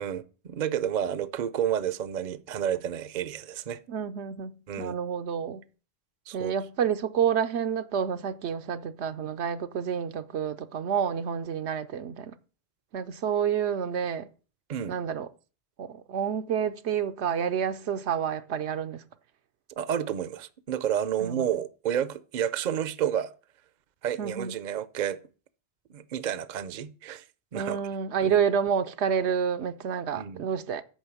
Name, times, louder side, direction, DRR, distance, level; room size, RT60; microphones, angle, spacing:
voice 1, 0.0-3.8 4.7-5.0 6.3-6.5 14.7-15.0 19.8-23.3 24.0-25.2 25.9-27.2 27.5-27.8 28.2-28.3 30.1-30.5, right 9 dB, 50° right, 0.7 m, -30 dB
voice 2, 3.9-4.5 4.8-5.6 6.3-12.3 12.9-14.3 14.9-15.3 15.8-19.0 21.2-21.5 24.2-24.5 27.5-30.8, right 7 dB, 85° right, 1.0 m, -29 dB
8.9 x 5.3 x 7.0 m
omnidirectional pair, 1.1 m